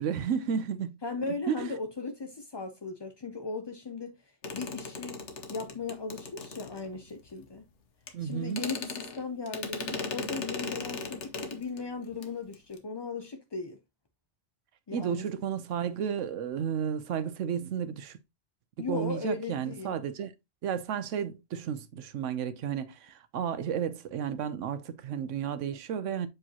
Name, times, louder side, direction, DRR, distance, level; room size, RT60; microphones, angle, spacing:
voice 1, 0.0-1.0 1.5-1.7 8.1-8.6 14.9-18.2 18.9-20.3 20.6-26.3, right 8 dB, 85° right, 1.0 m, -32 dB
voice 2, 1.0-4.2 4.5-5.2 5.5-7.6 8.2-13.8 14.9-15.2 18.8-19.9, left 4 dB, 35° left, 0.4 m, -37 dB
sound 1, 4.4-7.2 8.1-8.2 8.5-11.8 12.1-12.3 12.5-12.8, left 4 dB, 70° left, 1.3 m, -38 dB
7.6 x 4.8 x 2.9 m
omnidirectional pair, 1.2 m